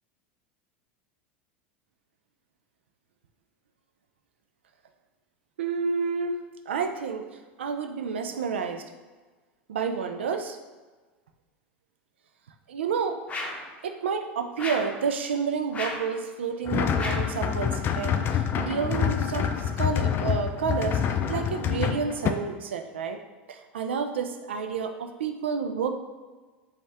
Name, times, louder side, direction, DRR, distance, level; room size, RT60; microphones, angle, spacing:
voice 1, 5.6-6.4 6.7-7.3 7.6-8.8 9.7-10.6 12.7-13.2 13.8-23.2 23.5-25.9, right 5 dB, 85° right, 7 dB, 0.4 m, -30 dB
sound 1, 13.3-13.7 14.6-15.0 15.7-16.1 17.0-17.4, left 2 dB, 20° left, 0.8 m, -34 dB
sound 2, 16.7-22.3, left 8 dB, 40° left, 0.4 m, -27 dB
5.2 x 2.4 x 3.4 m, 1.3 s
hypercardioid pair, 90°, 6 cm